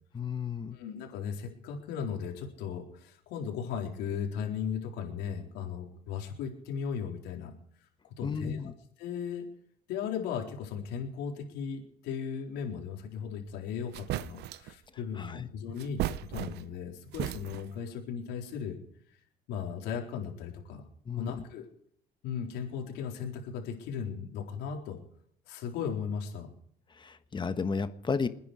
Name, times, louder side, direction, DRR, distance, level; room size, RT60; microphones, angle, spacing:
voice 1, 0.1-0.8 8.2-8.7 15.2-15.5 21.1-21.4 27.0-28.3, left 5 dB, 30° left, 10 dB, 1.4 m, -33 dB
voice 2, 0.7-7.5 8.2-8.6 9.0-9.5 9.9-18.8 19.5-20.8 21.2-21.6 22.2-25.0 25.5-26.5, left 7 dB, 90° left, 1 dB, 4.2 m, -37 dB
sound 1, 13.5-13.6 13.9-14.7 15.8-16.8 17.1-17.8, right 14 dB, 80° right, 0.7 m, -35 dB
27.0 x 10.0 x 5.0 m, 0.66 s
cardioid pair, 110°, 17 cm